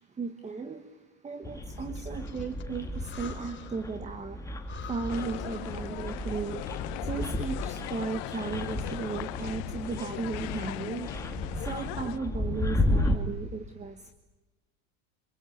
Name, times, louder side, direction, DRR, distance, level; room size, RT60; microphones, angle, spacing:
voice 1, 0.2-0.8 1.2-4.4 4.9-6.6 7.1-11.1 11.6-14.1, right 4 dB, 15° right, 10 dB, 1.3 m, -35 dB
sound 1, 1.4-13.2, left 1 dB, 10° left, 2.5 m, -34 dB
Breathing, 1.8-4.0 4.3-4.4 4.6-6.3, left 7 dB, 30° left, 3.7 m, -47 dB
sound 2, 5.1-12.2, left 19 dB, 60° left, 1.0 m, -38 dB
25.5 x 22.0 x 9.1 m, 1.1 s
supercardioid pair, 125°, 40 cm